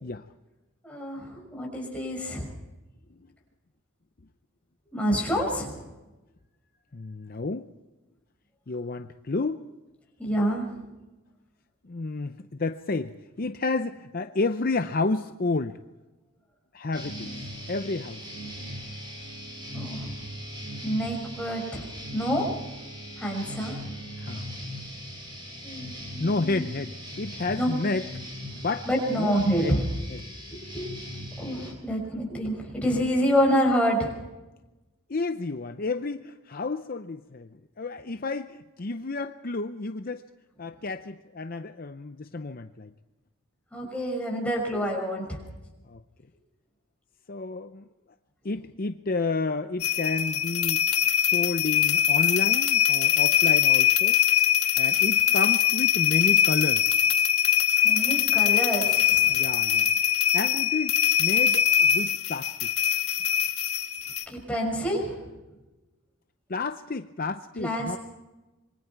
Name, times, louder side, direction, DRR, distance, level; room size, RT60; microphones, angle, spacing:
voice 1, 0.8-2.5 4.9-5.8 10.2-10.6 19.7-20.0 20.8-21.9 22.1-22.5 23.2-23.8 25.6-26.6 27.6-27.7 28.9-29.8 30.7-30.9 31.4-34.1 43.7-45.4 57.8-59.4 64.3-65.2 67.6-67.9, equal, 5° left, -1 dB, 6.0 m, -27 dB
voice 2, 6.9-7.7 8.7-9.6 11.8-15.8 16.7-17.3 17.7-18.2 24.2-24.6 26.2-28.1 28.5-29.8 30.1-30.2 35.1-40.2 40.6-42.9 45.9-46.0 47.3-47.8 48.4-50.8 51.2-54.2 54.8-56.9 59.3-59.9 60.3-62.7 66.5-68.0, left 3 dB, 40° left, 9 dB, 0.6 m, -31 dB
sound 1, 16.9-31.7, equal, 20° right, 7.0 m, -39 dB
sound 2, 49.8-64.2, left 9 dB, 90° left, 2.0 m, -22 dB
26.5 x 23.5 x 4.6 m, 1.1 s
head